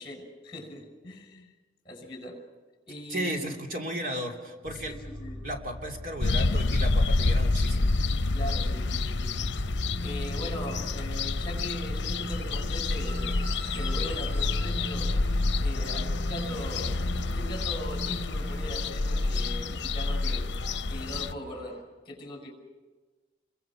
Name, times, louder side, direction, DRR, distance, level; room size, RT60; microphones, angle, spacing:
voice 1, 0.0-1.5 1.8-2.4 2.8-3.6 4.7-5.4 8.3-9.7 10.0-13.3 13.7-15.1 15.6-16.9 17.3-20.5 20.9-22.5, left 1 dB, 30° left, 2 dB, 5.9 m, -40 dB
voice 2, 3.1-4.9 5.4-7.9, equal, 50° right, 1 dB, 2.9 m, -34 dB
sound 1, 4.6-21.4, equal, ahead, 7.5 m, -40 dB
sound 2, 6.2-21.3, left 3 dB, 80° left, 0.7 m, -28 dB
sound 3, 12.2-21.8, left 1 dB, 65° right, 6.6 m, -50 dB
29.5 x 23.0 x 6.1 m, 1.3 s
head